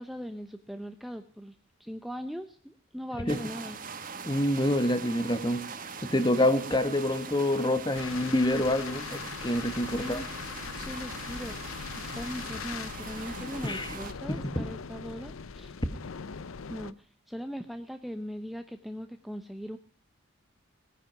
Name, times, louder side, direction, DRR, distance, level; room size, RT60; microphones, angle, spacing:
voice 1, 0.0-3.8 9.9-10.3 10.8-15.8 16.7-19.8, equal, ahead, 7 dB, 0.7 m, -40 dB
sound 1, 3.3-14.1, right 5 dB, 40° right, 1.6 m, -42 dB
voice 2, 4.3-5.6 6.0-10.2 13.6-13.9 14.3-14.7, left 1 dB, 20° left, 11 dB, 1.4 m, -27 dB
Car Wash Inside Car, 7.9-16.9, left 6 dB, 85° left, 0.6 m, -40 dB
18.0 x 10.0 x 5.8 m, 0.42 s
head